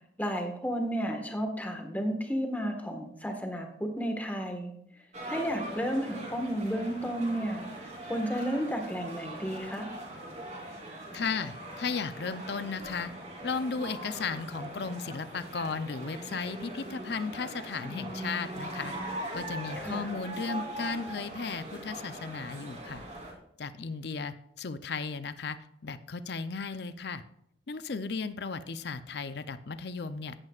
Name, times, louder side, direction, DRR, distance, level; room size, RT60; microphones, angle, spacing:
voice 1, 0.2-4.7 5.2-7.6 8.1-9.9 19.8-20.1, equal, 10° left, 3 dB, 1.5 m, -32 dB
sound 1, 5.1-23.3, right 1 dB, 35° right, 3.2 m, -41 dB
voice 2, 11.1-13.1 13.4-18.9 19.3-23.0 23.6-27.2 27.7-30.4, left 4 dB, 55° left, 12 dB, 0.5 m, -35 dB
15.0 x 11.0 x 2.4 m, 0.75 s
head